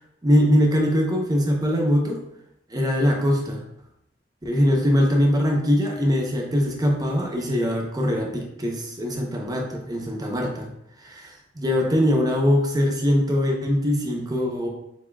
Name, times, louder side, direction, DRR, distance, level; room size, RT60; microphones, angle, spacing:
voice 1, 0.2-2.2 2.7-3.6 4.4-10.7 11.0-14.7, equal, 20° right, 0 dB, 0.7 m, -22 dB
6.9 x 2.8 x 2.3 m, 0.79 s
head